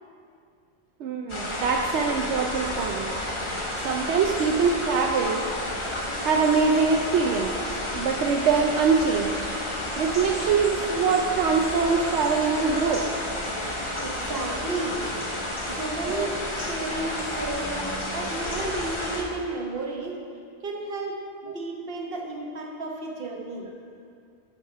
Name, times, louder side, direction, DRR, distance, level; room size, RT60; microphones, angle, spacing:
voice 1, 1.0-3.1 3.8-5.4 6.2-7.6 8.0-9.5 10.0-13.1 16.2-16.3, right 5 dB, 80° right, 1 dB, 0.9 m, -23 dB
sound 1, 1.3-19.2, left 1 dB, 30° left, 1.0 m, -31 dB
voice 2, 14.0-15.0 15.7-20.2 20.6-23.7, right 2 dB, 55° right, 1 dB, 1.2 m, -33 dB
8.1 x 6.4 x 5.5 m, 2.3 s
omnidirectional pair, 1.2 m